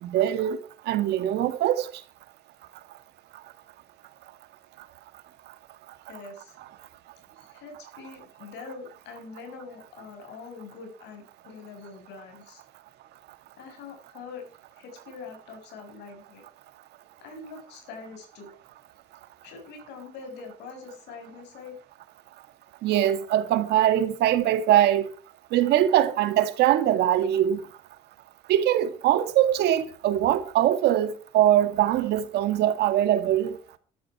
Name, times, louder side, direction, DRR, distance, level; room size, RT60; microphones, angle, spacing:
voice 1, 0.0-0.6 0.9-1.9 22.8-25.0 25.5-27.6 28.5-33.5, right 12 dB, 75° right, 1.9 m, -22 dB
voice 2, 6.1-6.6 7.4-12.6 13.6-14.5 14.7-16.4 17.2-18.5 19.4-21.8, left 4 dB, 85° left, 5.7 m, -43 dB
14.0 x 12.0 x 4.7 m
cardioid pair, 170°, 17 cm